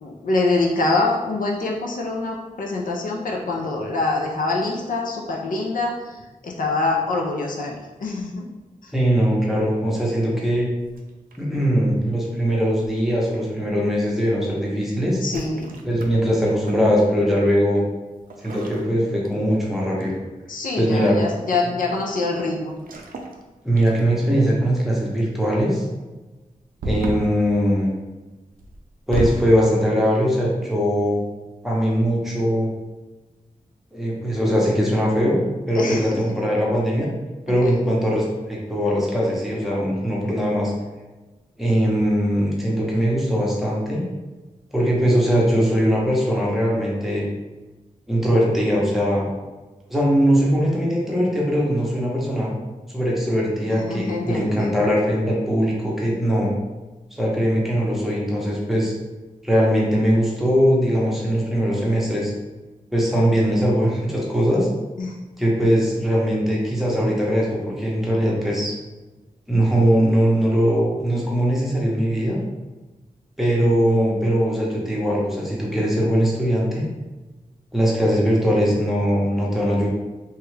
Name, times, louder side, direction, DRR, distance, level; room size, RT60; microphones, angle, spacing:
voice 1, 0.0-8.5 8.8-8.9 15.2-15.8 20.5-22.7 35.7-36.2 37.5-37.7 53.7-54.8 65.0-65.2, left 3 dB, 70° left, -1 dB, 0.5 m, -25 dB
voice 2, 8.9-10.7 11.4-15.2 15.8-17.8 18.4-20.2 20.8-21.2 23.6-25.8 26.8-27.9 29.1-31.2 31.6-32.7 33.9-35.4 35.7-37.1 37.5-40.7 41.6-44.1 44.7-47.3 48.1-49.3 49.9-52.5 52.9-56.5 57.1-58.9 59.4-62.3 62.9-64.7 65.4-68.7 69.5-72.4 73.4-76.9 77.7-79.9, equal, ahead, -5 dB, 0.7 m, -20 dB
sound 1, 10.9-11.6 12.8-13.2 15.2-16.9 18.3-19.7 20.0-20.3 22.8-23.4 23.8-24.3 26.8-27.4 28.6-29.5, right 1 dB, 85° right, 0.4 m, -32 dB
3.0 x 2.3 x 3.2 m, 1.2 s
wide cardioid pair, 130°, 14 cm